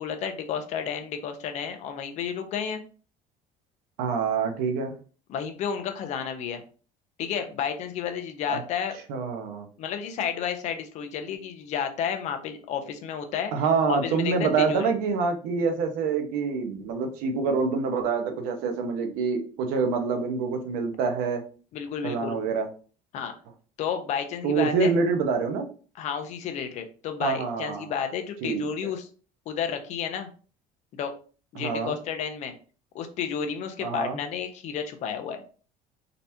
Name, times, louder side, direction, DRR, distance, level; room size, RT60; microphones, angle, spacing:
voice 1, 0.0-2.8 5.3-6.6 7.2-9.0 9.8-13.5 13.9-14.9 21.7-22.4 23.1-23.3 23.8-24.9 26.0-29.1 29.5-30.3 31.0-31.1 31.5-32.5 32.9-35.4, left 7 dB, 50° left, 6 dB, 0.8 m, -31 dB
voice 2, 4.0-4.9 8.5-8.6 9.1-9.7 13.5-21.4 22.0-22.7 24.4-25.7 27.2-27.9 28.4-28.9 31.6-31.9 33.8-34.2, right 5 dB, 85° right, 5 dB, 1.0 m, -26 dB
3.9 x 3.4 x 2.9 m, 0.38 s
cardioid pair, 150°, 15 cm